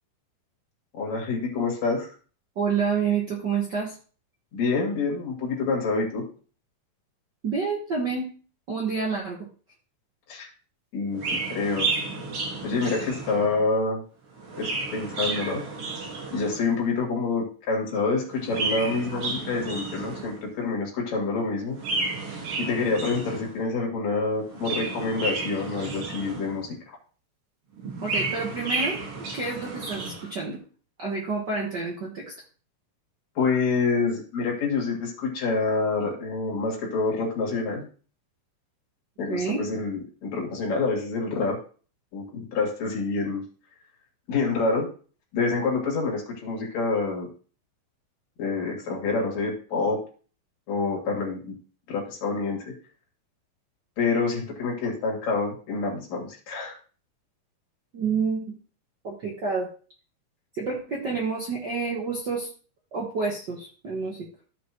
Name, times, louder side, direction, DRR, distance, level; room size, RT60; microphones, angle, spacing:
voice 1, 0.9-2.1 4.5-6.2 10.3-10.5 10.9-11.2 11.5-11.9 12.6-14.0 14.6-15.6 16.3-21.8 22.6-26.8 33.4-37.9 39.2-41.6 42.1-43.4 44.3-44.9 45.3-47.3 48.4-50.0 50.7-51.5 51.9-52.6 54.0-56.7, left 4 dB, 55° left, -1 dB, 3.1 m, -27 dB
voice 2, 2.6-3.9 7.4-8.3 8.7-9.5 28.0-29.0 29.3-30.6 31.0-32.3 39.3-39.6 57.9-58.5 59.0-59.7 60.5-62.5 62.9-64.3, right 5 dB, 75° right, -2 dB, 0.9 m, -28 dB
Chirp tweet, 11.1-13.6 14.3-16.8 18.3-20.5 21.7-23.6 24.4-26.7 27.8-30.3, right 3 dB, 45° right, 2.4 m, -32 dB
14.0 x 5.1 x 3.0 m, 0.39 s
omnidirectional pair, 4.1 m